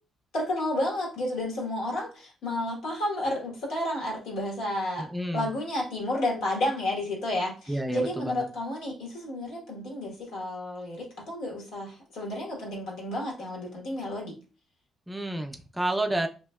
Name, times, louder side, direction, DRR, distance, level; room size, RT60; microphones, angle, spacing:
voice 1, 0.3-14.3, left 1 dB, 85° left, -2 dB, 1.2 m, -31 dB
voice 2, 5.0-5.5 7.7-8.4 15.1-16.3, right 1 dB, 10° right, 5 dB, 0.4 m, -30 dB
2.8 x 2.7 x 2.2 m, 0.34 s
cardioid pair, 90°, 0 cm